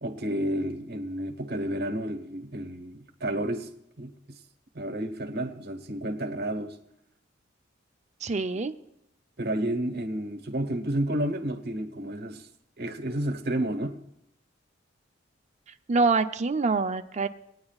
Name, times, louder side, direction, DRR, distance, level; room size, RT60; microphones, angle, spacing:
voice 1, 0.0-3.7 4.0-4.4 4.7-6.8 9.4-12.5 12.8-14.0, right 1 dB, 55° right, 1.1 m, -31 dB
voice 2, 8.2-8.7 15.9-17.3, right 4 dB, 35° right, 0.6 m, -25 dB
20.5 x 9.5 x 2.4 m
head